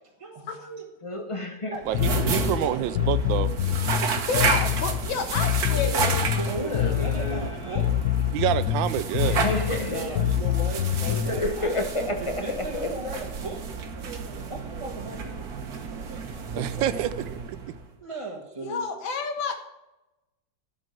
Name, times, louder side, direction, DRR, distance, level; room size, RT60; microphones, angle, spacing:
voice 1, 0.2-0.9 1.7-3.0 5.7-6.0 6.3-7.9 9.9-11.7 12.2-13.6 14.3-16.0 16.5-16.9 18.0-18.9, right 2 dB, 20° right, -1 dB, 1.3 m, -38 dB
voice 2, 1.0-2.2 2.5-2.6 6.5-7.9 9.2-10.3 11.1-12.9, left 2 dB, 45° left, 5 dB, 0.4 m, -31 dB
sound 1, 1.8-17.9, right 5 dB, 55° right, 1.6 m, -32 dB
Bass guitar, 1.9-11.4, left 11 dB, 65° left, 1.0 m, -26 dB
voice 3, 1.9-3.5 8.3-9.4 16.5-17.6, right 12 dB, 85° right, 13 dB, 1.3 m, -27 dB
voice 4, 4.3-6.2 16.9-17.0 18.6-19.5, left 5 dB, 90° left, 5 dB, 2.2 m, -30 dB
12.0 x 5.3 x 7.8 m, 0.96 s
omnidirectional pair, 2.0 m